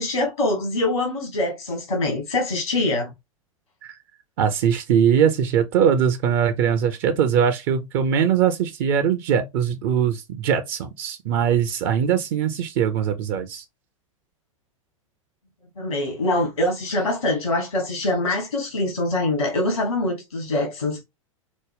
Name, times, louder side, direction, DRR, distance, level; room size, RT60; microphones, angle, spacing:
voice 1, 0.0-3.1 15.8-21.0, left 2 dB, 75° left, 1.4 m, -24 dB
voice 2, 4.4-13.6, right 8 dB, 40° right, 0.5 m, -21 dB
5.0 x 2.1 x 3.4 m
figure-of-eight pair, 90°, 17 cm